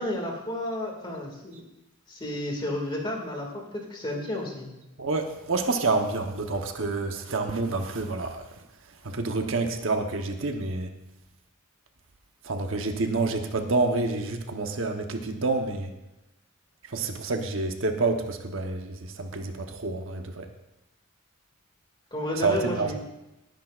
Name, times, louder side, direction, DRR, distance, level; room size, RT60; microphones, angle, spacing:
voice 1, 0.0-1.7 2.1-4.7 22.1-22.9, left 1 dB, 20° left, 0 dB, 2.2 m, -32 dB
voice 2, 5.0-8.4 9.0-10.9 12.4-15.9 16.9-20.5 22.4-22.9, right 3 dB, 65° right, 5 dB, 1.0 m, -28 dB
18.5 x 10.5 x 2.5 m, 0.95 s
head